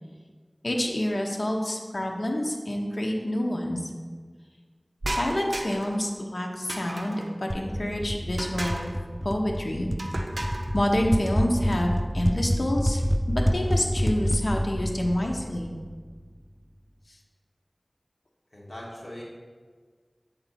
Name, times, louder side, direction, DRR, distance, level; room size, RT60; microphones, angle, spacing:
voice 1, 0.6-3.9 5.1-8.9 9.2-9.9 10.7-15.7, left 1 dB, 75° left, 0 dB, 0.8 m, -28 dB
sound 1, 5.0-6.0 6.7-7.3 8.4-9.0 10.0-10.7, right 1 dB, 70° right, 0.6 m, -34 dB
sound 2, 7.5-16.2, equal, 5° right, 0.3 m, -28 dB
voice 2, 18.5-19.2, left 1 dB, 45° left, -5 dB, 2.0 m, -40 dB
8.0 x 4.2 x 4.2 m, 1.5 s
wide cardioid pair, 40°, 0 cm